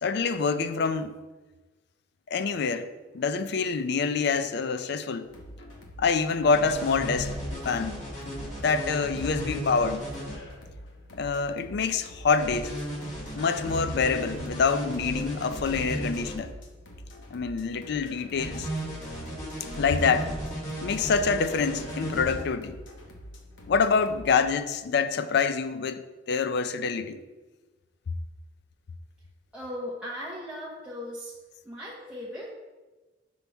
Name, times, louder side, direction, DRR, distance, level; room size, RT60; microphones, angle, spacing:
voice 1, 0.0-1.2 2.3-2.9 3.1-5.3 6.0-7.4 7.6-8.0 8.6-10.0 11.2-12.8 13.4-16.5 17.3-18.7 19.8-20.3 20.8-22.8 23.7-27.2, left 5 dB, 60° left, 0.4 m, -26 dB
sound 1, 5.2-24.4, equal, 90° left, 1.0 m, -46 dB
sound 2, 6.5-10.3 12.4-16.3 18.4-22.3, right 1 dB, 40° left, 2.0 m, -35 dB
voice 2, 29.5-31.3 31.6-32.5, left 1 dB, 5° right, 0.9 m, -37 dB
6.0 x 5.6 x 3.4 m
head